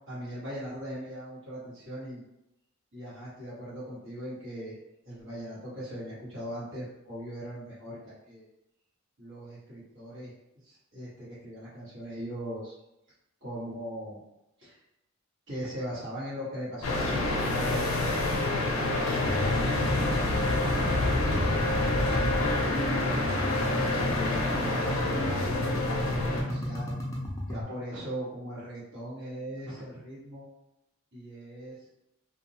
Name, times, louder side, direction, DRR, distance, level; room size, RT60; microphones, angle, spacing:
voice 1, 0.1-2.2 2.9-4.7 5.0-8.4 9.2-10.3 10.6-12.8 13.4-14.2 14.6-14.8 15.5-18.1 18.4-20.4 20.8-22.5 23.0-27.0 27.5-30.5 31.1-31.8, equal, 70° right, -10 dB, 1.3 m, -39 dB
sound 1, 16.8-26.4, left 2 dB, 85° left, 0.5 m, -27 dB
sound 2, 19.1-27.6, equal, 15° left, 0.4 m, -33 dB
2.6 x 2.2 x 2.7 m, 0.87 s
head